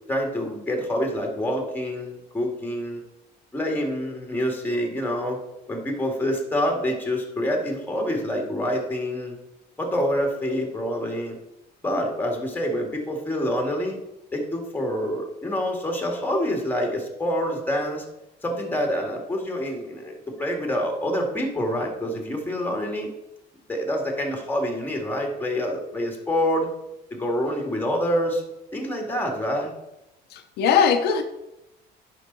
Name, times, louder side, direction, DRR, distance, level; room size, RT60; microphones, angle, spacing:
voice 1, 0.1-3.0 3.5-5.4 5.7-9.4 9.8-11.4 11.8-14.0 14.3-18.0 18.4-23.1 23.7-26.7 27.1-28.4 28.7-29.7, equal, 10° left, 2 dB, 2.2 m, -26 dB
voice 2, 30.3-31.2, left 6 dB, 80° left, 6 dB, 0.8 m, -20 dB
9.9 x 5.8 x 4.0 m, 0.91 s
cardioid pair, 110°, 17 cm